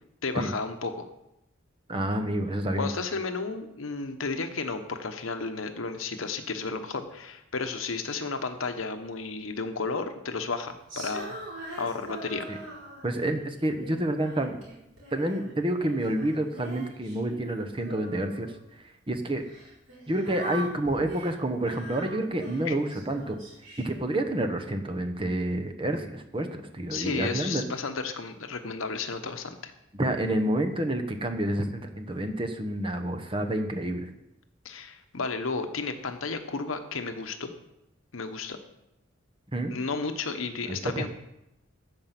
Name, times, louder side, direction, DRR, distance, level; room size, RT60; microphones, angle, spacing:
voice 1, 0.2-1.1 2.8-11.4 11.7-12.4 22.6-22.8 26.9-29.7 34.6-37.5 38.1-38.6 39.7-41.1, left 4 dB, 85° left, 7 dB, 1.0 m, -33 dB
voice 2, 1.9-2.9 12.5-12.6 13.0-14.6 15.1-18.5 18.7-19.4 20.1-23.4 23.8-27.6 29.9-34.1 39.5-39.7 40.7-41.1, right 1 dB, 25° right, 6 dB, 1.0 m, -29 dB
Female singing, 10.9-13.3 13.8-15.5 15.8-18.6 19.4-24.0, right 2 dB, 75° right, 4.3 m, -42 dB
14.5 x 5.4 x 6.0 m, 0.86 s
head